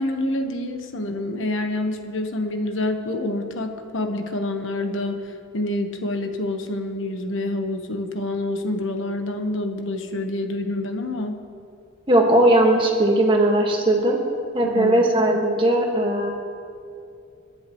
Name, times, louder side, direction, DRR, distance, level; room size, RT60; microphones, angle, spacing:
voice 1, 0.0-11.4 14.6-15.0, left 1 dB, 75° left, 5 dB, 1.2 m, -27 dB
voice 2, 12.1-14.2 14.5-16.3, right 1 dB, 25° right, 0 dB, 1.7 m, -18 dB
27.5 x 10.5 x 3.1 m, 2.5 s
head